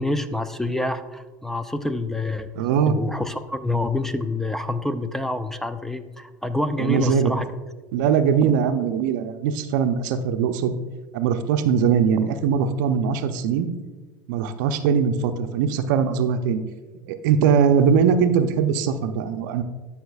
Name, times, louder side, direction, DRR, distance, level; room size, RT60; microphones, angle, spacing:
voice 1, 0.0-2.5 2.9-7.5, left 2 dB, 5° left, 11 dB, 0.4 m, -27 dB
voice 2, 2.6-3.0 6.8-7.3 7.9-10.7 11.1-13.7 14.3-16.6 17.1-19.6, right 7 dB, 65° right, 9 dB, 0.6 m, -21 dB
11.5 x 5.7 x 2.3 m, 1.3 s
hypercardioid pair, 80°, 11 cm